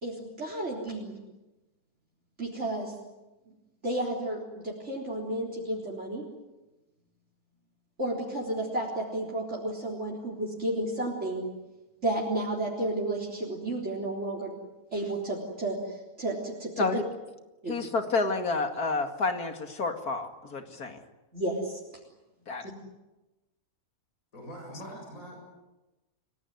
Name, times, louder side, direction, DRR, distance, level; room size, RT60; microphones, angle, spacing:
voice 1, 0.0-1.2 2.4-2.9 3.8-6.2 8.0-11.4 12.0-14.5 14.9-16.9 17.6-17.8 21.3-21.8 22.6-22.7, right 1 dB, 50° right, -1 dB, 4.1 m, -32 dB
voice 2, 17.7-21.0 22.5-22.7, left 3 dB, 85° left, 6 dB, 2.7 m, -29 dB
voice 3, 24.3-25.4, equal, 65° left, 1 dB, 8.1 m, -43 dB
29.5 x 18.0 x 9.6 m, 1.1 s
omnidirectional pair, 1.5 m